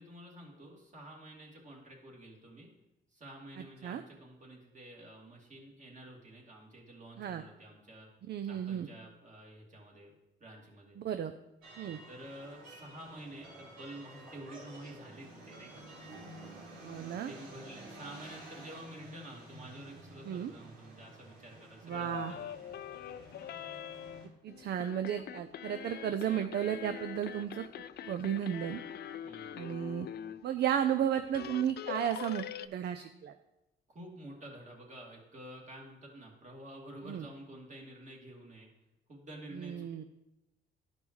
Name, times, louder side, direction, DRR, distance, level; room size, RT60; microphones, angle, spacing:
voice 1, 0.0-2.7 3.1-8.1 8.5-10.1 10.4-11.0 12.1-15.8 17.1-22.7 29.2-29.6 33.9-38.7 39.1-40.1, right 1 dB, 40° right, -2 dB, 2.4 m, -50 dB
voice 2, 3.6-4.0 7.2-7.4 8.3-8.9 11.0-11.3 11.8-12.0 16.8-17.3 20.2-20.5 21.8-22.4 24.4-27.6 28.0-28.8 29.6-30.1 30.4-33.3 37.0-37.3 39.5-40.0, right 9 dB, 55° right, 9 dB, 0.5 m, -34 dB
sound 1, 11.6-24.3, right 2 dB, 85° right, 2.9 m, -51 dB
sound 2, 21.9-30.4 30.9-31.0 31.2-32.7, left 10 dB, 55° left, 0.4 m, -44 dB
12.0 x 5.3 x 3.2 m, 0.92 s
cardioid pair, 90°, 20 cm